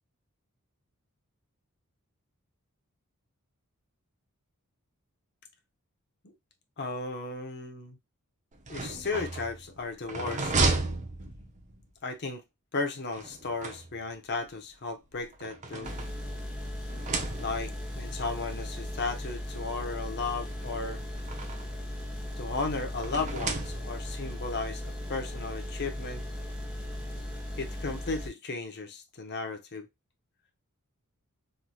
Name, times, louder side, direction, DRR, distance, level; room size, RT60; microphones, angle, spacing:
voice 1, 6.8-8.0 8.7-10.5 12.0-12.4 12.7-15.9 17.4-21.0 22.4-26.2 27.6-29.9, left 3 dB, 50° left, 0.7 m, -35 dB
sound 1, 8.5-11.8 13.1-14.3 15.1-16.5 16.9-17.8 18.8-18.9 19.2-19.3 20.5-21.8 23.0-24.2, right 3 dB, 35° right, 0.6 m, -34 dB
sound 2, 15.8-28.3, left 1 dB, 5° right, 0.8 m, -37 dB
3.1 x 2.8 x 2.2 m
head